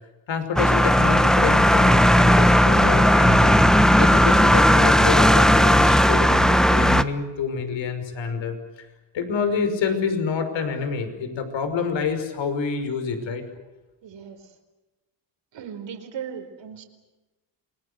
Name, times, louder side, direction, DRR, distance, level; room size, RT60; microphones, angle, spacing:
voice 1, 0.3-3.5 4.0-8.5 9.1-13.4, left 5 dB, 60° left, 8 dB, 5.7 m, -27 dB
sound 1, 0.6-7.0, equal, ahead, 1.2 m, -16 dB
voice 2, 14.0-14.4 15.5-16.8, right 8 dB, 60° right, 7 dB, 4.8 m, -37 dB
28.0 x 20.0 x 8.2 m, 1.1 s
supercardioid pair, 80°, 50 cm